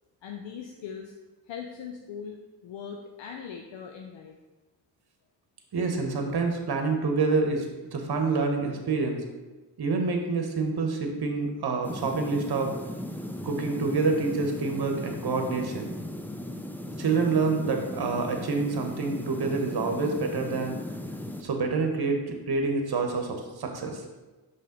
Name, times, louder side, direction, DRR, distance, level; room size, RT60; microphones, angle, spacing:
voice 1, 0.2-1.1 1.5-4.3, left 7 dB, 70° left, 2 dB, 0.7 m, -40 dB
voice 2, 5.7-7.7 7.9-9.2 9.8-12.7 13.4-15.9 17.0-20.7 21.4-24.0, right 4 dB, 50° right, 4 dB, 1.2 m, -27 dB
sound 1, 11.8-21.4, left 1 dB, 5° left, 0.5 m, -37 dB
5.5 x 3.3 x 5.2 m, 1.2 s
supercardioid pair, 40°, 47 cm